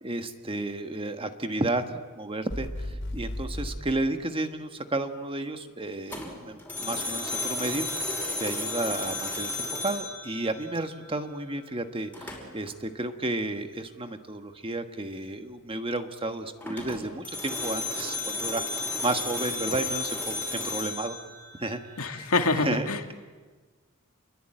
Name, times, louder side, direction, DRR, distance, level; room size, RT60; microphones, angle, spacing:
voice 1, 0.0-21.2 21.6-22.3 22.6-23.1, right 2 dB, 25° right, 7 dB, 1.5 m, -32 dB
sound 1, 2.5-3.8, left 1 dB, 60° left, 4.0 m, -34 dB
sound 2, 6.1-11.1 12.1-12.7 16.6-22.1, left 2 dB, 10° left, 5.6 m, -33 dB
voice 2, 22.0-23.0, left 3 dB, 90° left, 5 dB, 2.4 m, -26 dB
28.5 x 22.5 x 9.1 m, 1.4 s
head